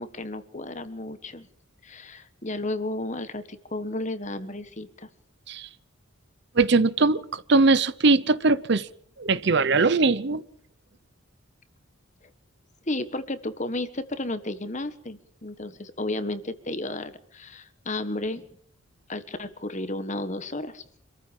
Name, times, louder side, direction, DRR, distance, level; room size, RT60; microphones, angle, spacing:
voice 1, 0.0-1.5 1.8-5.1 12.9-18.5 19.1-20.8, left 2 dB, 35° left, 11 dB, 1.5 m, -33 dB
voice 2, 6.5-8.9 9.2-10.4, right 3 dB, 55° right, 17 dB, 0.8 m, -21 dB
26.5 x 14.5 x 7.3 m, 0.63 s
head